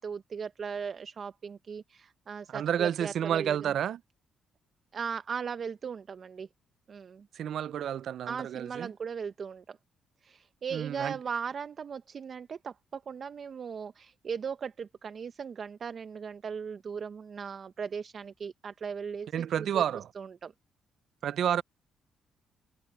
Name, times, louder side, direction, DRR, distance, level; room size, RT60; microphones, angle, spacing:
voice 1, 0.0-3.8 4.9-6.5 6.9-7.3 8.3-9.8 10.2-19.8 20.2-20.5, right 6 dB, 50° right, 0.8 m, -38 dB
voice 2, 2.5-4.0 7.3-8.9 10.7-11.2 19.3-20.1 21.2-21.6, right 9 dB, 70° right, 0.4 m, -30 dB
cardioid pair, 90°, 0 cm